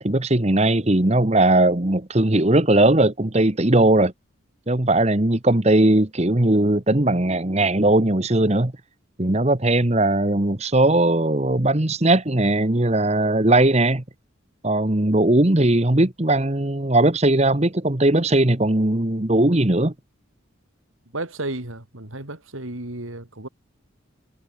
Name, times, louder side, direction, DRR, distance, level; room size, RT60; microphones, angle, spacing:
voice 1, 0.0-4.1 4.7-8.7 9.2-14.0 14.6-19.9, right 1 dB, 30° right, 1.3 m, -19 dB
voice 2, 21.1-23.5, right 2 dB, 80° right, 3.7 m, -33 dB
head